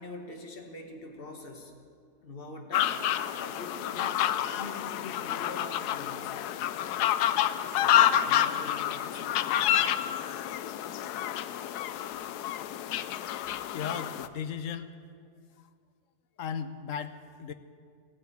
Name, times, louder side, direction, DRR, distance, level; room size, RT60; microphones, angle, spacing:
voice 1, 0.0-1.7 2.2-3.0 3.4-6.4 7.7-9.4, left 2 dB, 40° left, 4 dB, 1.6 m, -43 dB
sound 1, 2.7-14.3, left 11 dB, 85° left, 1.1 m, -29 dB
voice 2, 13.4-14.9 15.6-15.7 16.4-17.5, left 7 dB, 65° left, 11 dB, 1.0 m, -37 dB
15.5 x 9.6 x 8.4 m, 2.2 s
omnidirectional pair, 1.6 m